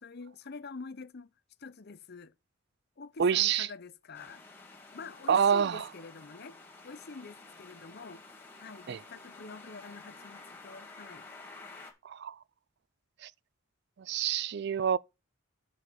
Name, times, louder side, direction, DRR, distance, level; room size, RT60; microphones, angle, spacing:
voice 1, 0.0-1.3 1.6-2.3 3.0-4.4 4.9-6.6 6.8-8.2 8.6-11.3, left 4 dB, 50° left, 0.7 m, -46 dB
voice 2, 3.2-3.7 5.3-5.8 8.9-9.0 12.0-12.4 13.2-13.3 14.0-15.0, right 7 dB, 55° right, 0.4 m, -27 dB
sound 1, 4.1-11.9, left 3 dB, 10° left, 2.4 m, -51 dB
7.3 x 5.5 x 6.8 m
head